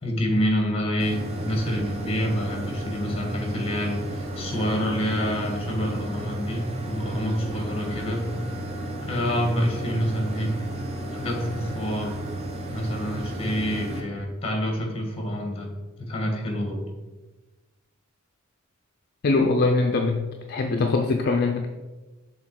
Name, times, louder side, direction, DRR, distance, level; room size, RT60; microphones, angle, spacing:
voice 1, 0.0-8.4 9.0-10.5 11.1-12.2 12.7-15.7 16.0-16.8, equal, 30° left, 2 dB, 1.4 m, -27 dB
sound 1, 1.0-14.0, right 1 dB, 30° right, 0.9 m, -33 dB
voice 2, 19.2-21.7, left 3 dB, 50° left, 3 dB, 0.4 m, -22 dB
6.6 x 3.7 x 4.6 m, 1.2 s
head